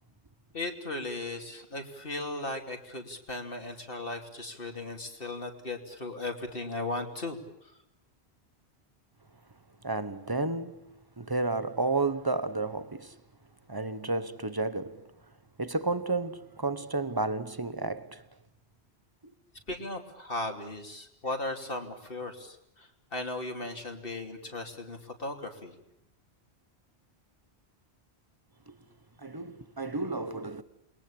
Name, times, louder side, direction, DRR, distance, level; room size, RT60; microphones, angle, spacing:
voice 1, 0.5-7.4 19.7-22.6 23.1-25.7, left 2 dB, 55° left, 3.2 m, -36 dB
voice 2, 9.8-13.1 13.7-15.1 15.6-18.2 28.7-28.8 29.2-30.6, right 3 dB, 20° right, 1.2 m, -32 dB
29.0 x 21.5 x 8.7 m
omnidirectional pair, 1.1 m